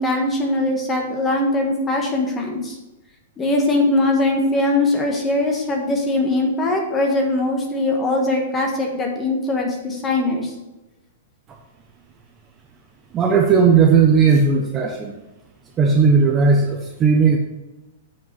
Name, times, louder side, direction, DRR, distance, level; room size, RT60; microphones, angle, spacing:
voice 1, 0.0-2.8 3.4-10.5, left 2 dB, 15° left, 1 dB, 1.4 m, -21 dB
voice 2, 13.1-15.1 15.8-17.4, right 5 dB, 20° right, 2 dB, 0.7 m, -16 dB
8.1 x 5.3 x 5.4 m, 1.0 s
hypercardioid pair, 165°, 0 cm